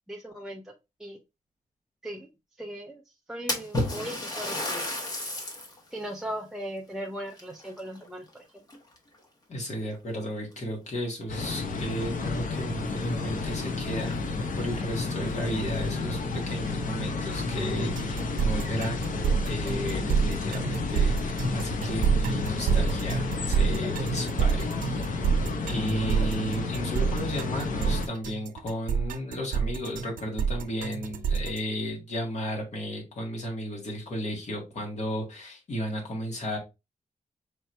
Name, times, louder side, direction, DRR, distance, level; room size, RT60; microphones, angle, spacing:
voice 1, 0.1-0.6 1.0-1.2 2.0-2.3 2.6-3.0 3.3-4.9 5.9-8.2, equal, 5° right, 0 dB, 0.5 m, -38 dB
Splash splatter, 3.5-5.8 6.3-6.4 7.3-8.3 8.7-9.1 9.9-10.0 10.5-10.6 12.8-12.9 13.2-13.3 13.9-14.0 14.4-14.5 15.2-15.8, left 1 dB, 30° left, 1.0 m, -32 dB
voice 2, 9.5-14.3 14.6-16.2 16.5-19.2 19.4-25.0 25.7-36.6, equal, 55° left, -1 dB, 1.9 m, -34 dB
sound 1, 11.3-28.1, left 3 dB, 75° left, 0.7 m, -31 dB
sound 2, 18.0-31.6, right 6 dB, 85° right, 0.6 m, -27 dB
4.6 x 3.0 x 3.2 m, 0.24 s
wide cardioid pair, 170°, 14 cm